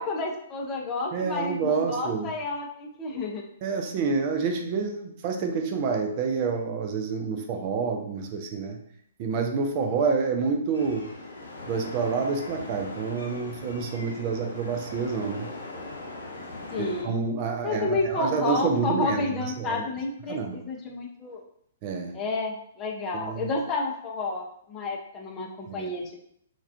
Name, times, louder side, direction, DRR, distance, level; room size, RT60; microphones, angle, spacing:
voice 1, 0.0-3.4 16.7-17.2 17.6-21.4 22.1-26.1, left 3 dB, 25° left, 0 dB, 0.4 m, -30 dB
voice 2, 1.1-2.3 3.6-8.8 9.2-11.1 11.7-15.5 16.8-19.8 20.3-20.6 21.8-22.1 23.1-23.5 25.7-25.9, right 5 dB, 40° right, 4 dB, 0.3 m, -28 dB
sound 1, 10.7-17.0, left 2 dB, 80° left, 0.6 m, -40 dB
2.3 x 2.2 x 2.4 m, 0.69 s
hypercardioid pair, 125°, 0 cm